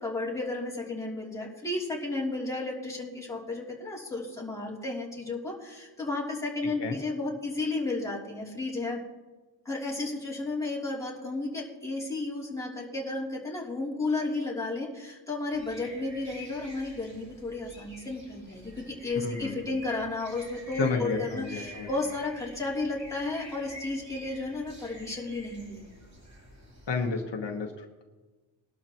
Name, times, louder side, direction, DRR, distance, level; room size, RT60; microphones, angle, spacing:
voice 1, 0.0-9.0 9.6-25.9, left 2 dB, 5° left, -5 dB, 3.1 m, -33 dB
sound 1, 15.5-27.1, equal, 35° right, 4.0 m, -48 dB
voice 2, 19.1-19.7 20.8-21.9 26.9-28.0, left 4 dB, 60° left, 2 dB, 1.4 m, -32 dB
22.0 x 12.5 x 3.0 m, 1.2 s
wide cardioid pair, 145°, 48 cm